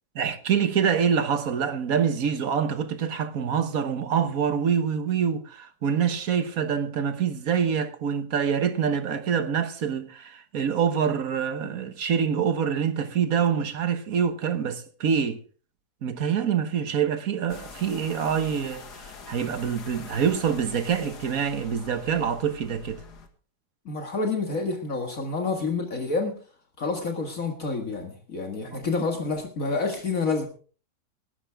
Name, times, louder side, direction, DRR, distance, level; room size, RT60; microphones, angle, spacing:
voice 1, 0.1-15.4 16.0-23.0 28.7-28.8, right 7 dB, 60° right, 1.5 m, -26 dB
sound 1, 17.5-23.3, left 4 dB, 80° left, 2.2 m, -44 dB
voice 2, 23.9-26.3 26.8-30.5, left 3 dB, 55° left, 2.1 m, -28 dB
18.5 x 12.0 x 3.5 m
omnidirectional pair, 1.7 m